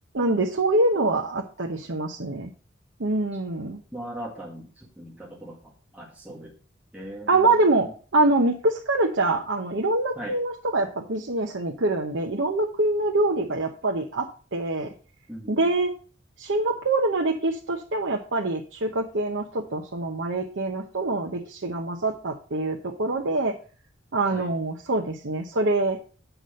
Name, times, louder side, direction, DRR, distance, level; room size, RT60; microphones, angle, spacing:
voice 1, 0.1-2.5 3.0-3.8 7.3-14.9 15.5-15.9 16.4-23.6 24.1-26.0, right 2 dB, 70° right, 1 dB, 0.9 m, -25 dB
voice 2, 3.9-4.7 5.0-5.6 5.9-6.5 6.9-7.3 10.2-10.3 15.3-15.6 24.3-24.5, right 1 dB, 5° right, -4 dB, 1.8 m, -38 dB
8.0 x 6.0 x 5.2 m, 0.39 s
head